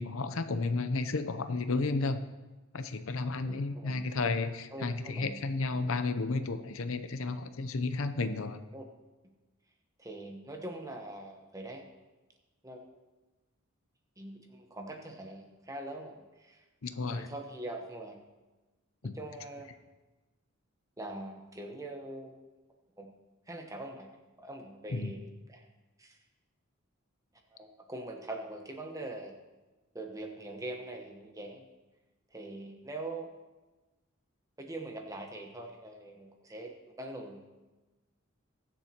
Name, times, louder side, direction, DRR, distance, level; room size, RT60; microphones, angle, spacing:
voice 1, 0.0-2.2 2.7-8.6 16.8-17.3 19.0-19.1 24.9-25.1, left 3 dB, 70° left, 10 dB, 0.6 m, -32 dB
voice 2, 3.4-4.0 4.7-5.4 8.7-8.8 10.0-11.8 12.6-12.9 14.2-16.6 17.1-18.2 19.0-19.7 21.0-22.4 23.0-23.1 23.5-24.1 24.4-25.7 26.0-26.2 27.5-29.3 29.9-31.6 32.3-33.3 34.6-36.7 37.0-37.5, right 1 dB, 15° right, 3 dB, 1.0 m, -43 dB
21.5 x 7.3 x 2.9 m, 1.1 s
head